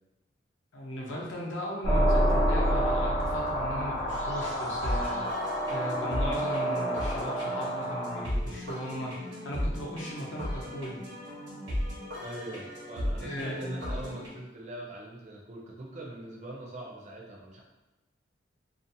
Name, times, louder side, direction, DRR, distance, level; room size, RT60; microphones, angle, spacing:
voice 1, 0.7-9.2 9.4-11.0 13.2-13.9, equal, 85° left, -3 dB, 0.6 m, -37 dB
sound 1, 1.8-8.2, equal, 35° left, 0.5 m, -28 dB
sound 2, 4.8-14.3, equal, 75° right, 0.8 m, -36 dB
voice 2, 12.2-17.6, right 1 dB, 35° right, -2 dB, 0.4 m, -42 dB
2.5 x 2.0 x 2.6 m, 1.0 s
head